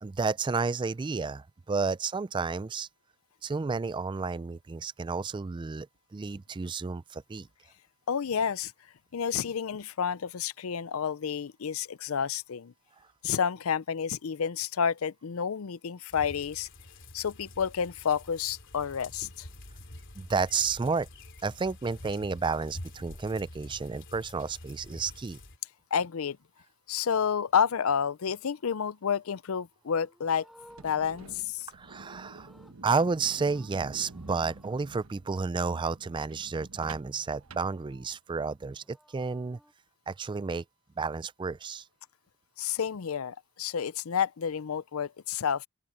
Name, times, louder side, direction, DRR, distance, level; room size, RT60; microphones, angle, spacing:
voice 1, 0.0-2.9 3.4-5.9 6.1-7.5 20.2-21.1 21.4-25.4 31.7-32.5 32.8-39.6 40.1-40.6 41.0-41.8, right 4 dB, 20° right, 0.3 m, -31 dB
voice 2, 8.1-8.7 9.1-12.7 13.2-16.7 17.1-19.5 25.9-26.4 26.9-30.5 30.8-31.7 42.6-45.7, left 7 dB, 90° left, 0.5 m, -30 dB
sound 1, 16.1-25.6, left 1 dB, 60° left, 3.5 m, -48 dB
Livestock farm animals working animals, 29.7-33.2 33.4-34.8 38.5-39.7, equal, ahead, 7.5 m, -59 dB
sound 2, 30.6-38.4, right 3 dB, 80° right, 1.2 m, -50 dB
open air
head